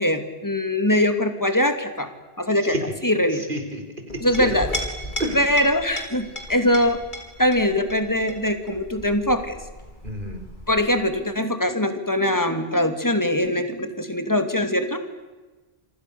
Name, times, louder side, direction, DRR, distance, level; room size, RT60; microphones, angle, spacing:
voice 1, 0.0-2.1 2.4-2.7 3.0-3.4 4.2-4.7 5.3-7.0 7.4-9.6 10.7-15.0, left 1 dB, 20° left, 8 dB, 2.5 m, -22 dB
voice 2, 3.3-3.8 4.3-4.5 5.2-5.6 10.0-10.4, right 1 dB, 55° right, 5 dB, 4.6 m, -30 dB
Chink clink, 4.1-11.2, left 1 dB, 50° left, 4.4 m, -36 dB
28.0 x 25.0 x 7.0 m, 1.2 s
omnidirectional pair, 1.0 m